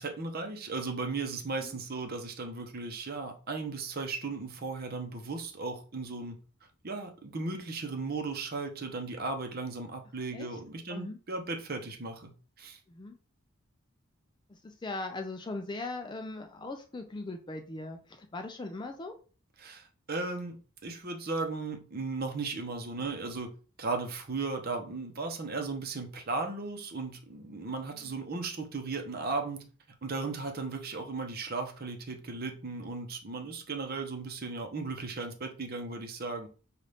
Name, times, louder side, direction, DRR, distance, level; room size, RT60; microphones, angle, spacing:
voice 1, 0.0-6.4 6.8-12.8 19.6-23.5 23.8-29.6 30.0-36.5, right 3 dB, 45° right, 0.7 m, -36 dB
voice 2, 10.9-11.2 12.9-13.2 14.5-19.2 27.9-28.2, left 2 dB, 20° left, 0.3 m, -40 dB
5.4 x 2.4 x 3.3 m
head